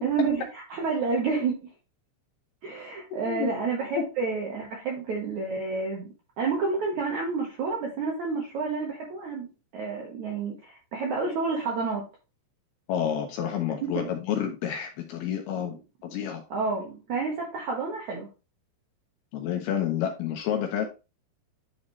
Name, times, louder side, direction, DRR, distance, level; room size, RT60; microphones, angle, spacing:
voice 1, 0.0-1.6 2.6-12.1 13.8-14.1 15.6-15.7 16.5-18.3, right 4 dB, 70° right, -1 dB, 1.8 m, -30 dB
voice 2, 3.1-3.5 4.0-4.1 12.9-15.8 16.0-16.4 19.3-20.9, left 9 dB, 75° left, 4 dB, 2.5 m, -29 dB
11.0 x 4.1 x 3.1 m, 0.30 s
omnidirectional pair, 5.2 m